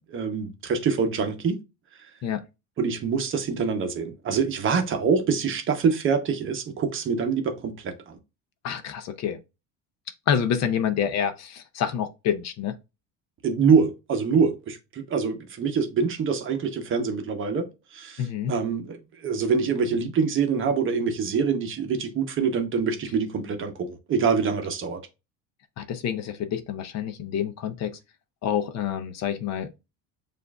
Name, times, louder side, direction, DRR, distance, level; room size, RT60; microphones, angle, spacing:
voice 1, 0.1-1.6 2.8-8.2 13.4-25.0, right 5 dB, 35° right, 0.8 m, -25 dB
voice 2, 8.6-9.4 10.3-12.7 18.2-18.6 25.8-28.0 28.4-29.7, left 8 dB, 45° left, 0.6 m, -27 dB
6.8 x 2.5 x 2.3 m
cardioid pair, 130°, 37 cm